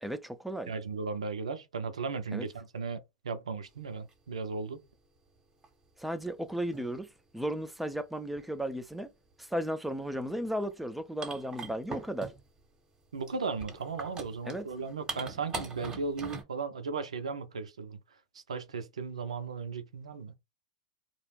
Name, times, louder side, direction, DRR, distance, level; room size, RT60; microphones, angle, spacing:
voice 1, 0.0-0.7 2.3-2.5 6.0-9.1 9.4-12.3 14.4-14.7, right 1 dB, ahead, 0.4 m, -35 dB
voice 2, 0.7-3.0 3.2-4.9 13.1-18.0 18.3-20.3, right 4 dB, 90° right, 0.5 m, -36 dB
sound 1, 4.1-4.2 5.6-5.7 6.5-7.0 8.2-8.5 10.3-10.4 10.6-10.7 11.2-12.6 13.3-16.4, right 3 dB, 20° right, 0.8 m, -41 dB
2.4 x 2.0 x 3.2 m
hypercardioid pair, 105°, 3 cm